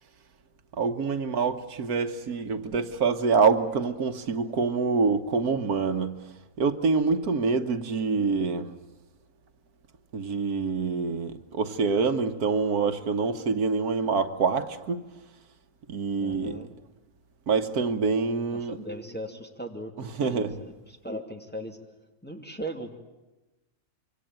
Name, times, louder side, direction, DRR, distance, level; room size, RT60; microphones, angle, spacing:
voice 1, 0.8-6.1 6.6-8.8 10.1-15.0 15.9-16.6 17.5-18.8 20.0-20.5, right 4 dB, 80° right, 1.7 m, -26 dB
voice 2, 16.2-16.7 18.5-20.7 21.0-21.8 22.2-22.9, right 1 dB, 5° left, 2.4 m, -38 dB
26.0 x 24.5 x 9.0 m
omnidirectional pair, 1.6 m